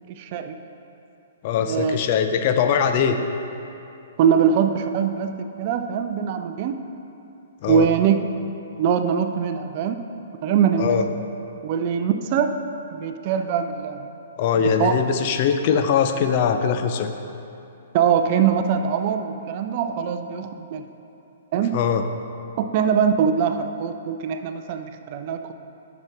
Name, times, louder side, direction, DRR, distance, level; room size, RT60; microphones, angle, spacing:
voice 1, 0.2-0.6 1.6-2.0 4.2-6.7 7.7-8.2 8.8-10.0 10.4-11.0 11.6-12.6 12.9-14.1 14.6-14.9 17.9-20.8 21.5-21.8 22.6-25.5, right 7 dB, 45° right, 7 dB, 0.4 m, -22 dB
voice 2, 1.4-3.2 7.6-7.9 10.8-11.0 14.4-17.1 21.7-22.0, left 7 dB, 45° left, 7 dB, 0.5 m, -21 dB
8.8 x 6.0 x 3.5 m, 2.7 s
figure-of-eight pair, 120°, 0 cm